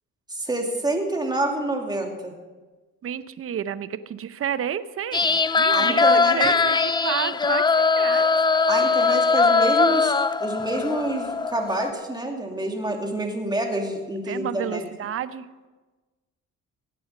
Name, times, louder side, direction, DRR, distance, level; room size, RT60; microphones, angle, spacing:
voice 1, 0.3-2.3 5.7-6.4 8.7-14.8, right 1 dB, 15° right, 2 dB, 2.5 m, -27 dB
voice 2, 3.0-8.3 14.3-15.7, right 9 dB, 50° right, 14 dB, 0.7 m, -31 dB
sound 1, 5.1-11.9, left 4 dB, 15° left, 0.4 m, -21 dB
16.5 x 9.2 x 5.4 m, 1.3 s
cardioid pair, 90°, 30 cm